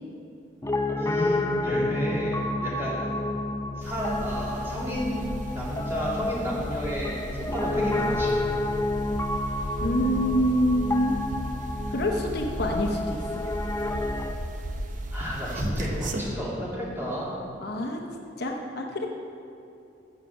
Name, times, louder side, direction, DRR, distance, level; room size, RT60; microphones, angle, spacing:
Piano, 0.6-14.3, left 2 dB, 15° left, 0.5 m, -30 dB
voice 1, 1.0-1.4 1.6-3.1 3.7-8.4 15.1-17.3, equal, 15° right, -7 dB, 2.6 m, -32 dB
sound 1, 3.8-16.2, right 1 dB, 45° right, 0.7 m, -36 dB
voice 2, 9.8-11.2 11.9-13.3 17.6-18.0 18.4-19.1, equal, 60° left, 2 dB, 0.9 m, -26 dB
7.4 x 7.4 x 7.0 m, 2.8 s
head